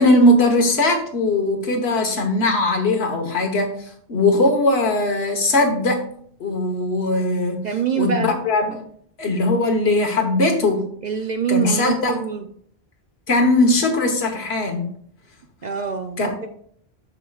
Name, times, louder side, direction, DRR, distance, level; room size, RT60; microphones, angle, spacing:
voice 1, 0.0-3.7 4.1-6.0 6.4-7.7 7.9-8.8 9.2-10.9 11.5-12.3 13.3-14.9 16.2-16.3, left 2 dB, 70° left, 4 dB, 1.5 m, -19 dB
voice 2, 7.6-8.3 11.0-12.5 15.6-16.5, right 7 dB, 50° right, 6 dB, 0.6 m, -25 dB
13.0 x 4.6 x 2.4 m, 0.62 s
omnidirectional pair, 1.1 m